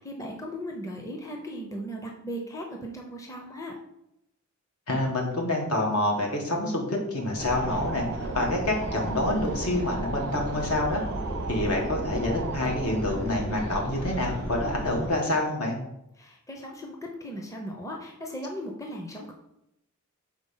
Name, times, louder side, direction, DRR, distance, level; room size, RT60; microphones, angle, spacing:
voice 1, 0.0-3.7 16.2-19.3, equal, 15° left, 1 dB, 0.6 m, -37 dB
voice 2, 4.9-8.0 8.3-11.0 11.5-15.8, left 1 dB, 75° left, 0 dB, 1.5 m, -27 dB
sound 1, 7.2-14.6, right 6 dB, 60° right, 0.3 m, -39 dB
sound 2, 7.4-15.1, equal, 55° left, 2.3 m, -34 dB
5.1 x 3.7 x 5.5 m, 0.84 s
head